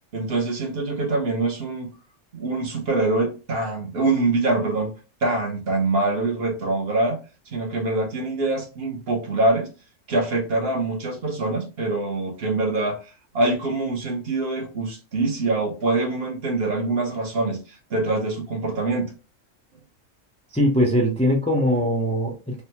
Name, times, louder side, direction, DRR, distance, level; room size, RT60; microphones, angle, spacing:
voice 1, 0.1-1.9 2.3-4.9 5.2-7.2 7.5-9.7 10.1-19.1, right 2 dB, 55° right, 0.9 m, -24 dB
voice 2, 20.5-22.6, equal, 10° left, 0.3 m, -21 dB
3.3 x 2.1 x 2.8 m
omnidirectional pair, 1.3 m